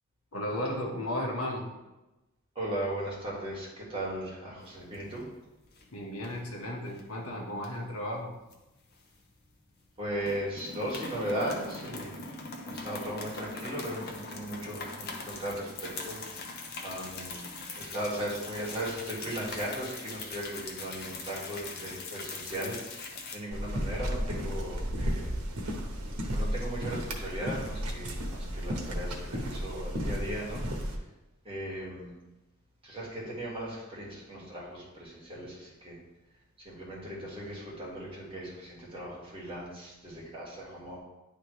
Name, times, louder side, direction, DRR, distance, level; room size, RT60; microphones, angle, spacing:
voice 1, 0.3-1.7 5.9-8.3, left 1 dB, 75° left, -1 dB, 1.3 m, -34 dB
voice 2, 2.6-5.2 10.0-12.1 12.7-16.2 16.8-17.5 17.7-22.8 23.3-25.3 26.3-30.6 31.5-32.1 32.9-36.0 36.7-41.0, right 1 dB, 25° right, -5 dB, 1.8 m, -37 dB
sound 1, 4.7-5.4 5.6-5.9 6.2-7.0 7.6-9.5 9.8-10.0 10.2-23.4, left 3 dB, 45° left, 0.8 m, -41 dB
sound 2, 23.5-31.0, equal, 85° right, 1.1 m, -33 dB
10.0 x 3.5 x 3.1 m, 1.0 s
head